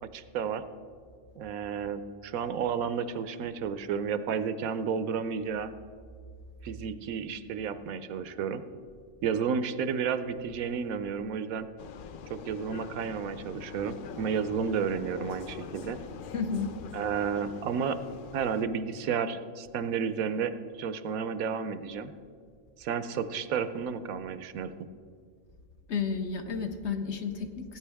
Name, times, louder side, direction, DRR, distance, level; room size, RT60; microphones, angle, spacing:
voice 1, 0.0-0.6 1.4-5.7 6.6-8.6 9.2-11.7 12.3-16.0 16.9-18.0 18.3-22.1 22.8-24.7, right 6 dB, 75° right, 12 dB, 1.0 m, -32 dB
Vehicle, 11.8-18.7, left 6 dB, 85° left, 0.4 m, -44 dB
voice 2, 16.3-16.7 25.9-27.8, left 5 dB, 55° left, 6 dB, 1.1 m, -32 dB
17.5 x 9.3 x 3.4 m, 2.2 s
omnidirectional pair, 1.5 m